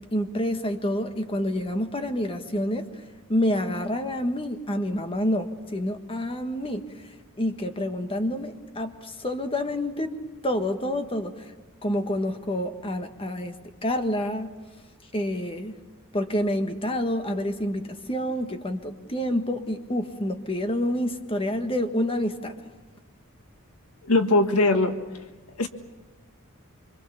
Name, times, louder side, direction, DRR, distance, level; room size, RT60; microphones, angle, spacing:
voice 1, 0.0-2.9 3.3-6.9 7.4-10.2 10.4-11.5 11.8-13.5 13.8-14.5 15.1-15.8 16.1-22.5, left 1 dB, 25° left, 6 dB, 1.5 m, -28 dB
voice 2, 24.0-25.0 25.6-25.7, left 2 dB, 85° left, 7 dB, 1.6 m, -20 dB
25.5 x 25.5 x 7.0 m, 1.2 s
head